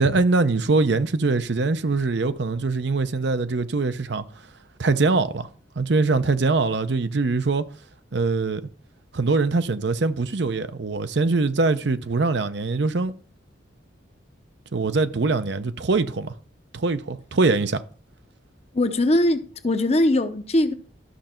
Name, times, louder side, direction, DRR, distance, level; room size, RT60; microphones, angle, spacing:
voice 1, 0.0-4.2 4.8-5.5 5.8-7.6 8.1-8.6 9.1-13.1 14.7-16.3 16.7-17.8, right 3 dB, 65° right, 0.7 m, -22 dB
voice 2, 18.7-20.7, left 1 dB, 35° left, 0.7 m, -21 dB
13.0 x 6.5 x 4.4 m
head